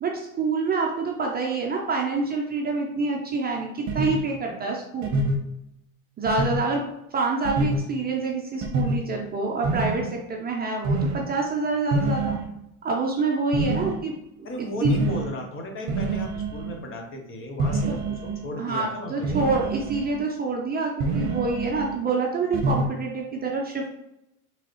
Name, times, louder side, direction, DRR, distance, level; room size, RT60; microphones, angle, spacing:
voice 1, 0.0-5.1 6.2-6.8 7.1-12.3 12.8-14.1 14.4-15.0 17.9-18.0 18.6-23.9, right 3 dB, 20° right, 0 dB, 0.6 m, -27 dB
sound 1, 3.9-4.2 5.0-5.4 6.3-6.6 7.4-7.8 8.6-9.0 9.6-10.0 10.8-11.2 11.9-12.5 13.5-14.0 14.8-15.3 15.9-16.8 17.6-18.5 19.2-20.2 21.0-22.0 22.5-22.9, right 2 dB, 40° right, 1.0 m, -26 dB
voice 2, 14.4-19.4, left 1 dB, 30° left, 2 dB, 0.9 m, -35 dB
3.8 x 3.1 x 3.1 m, 0.83 s
hypercardioid pair, 105°, 42 cm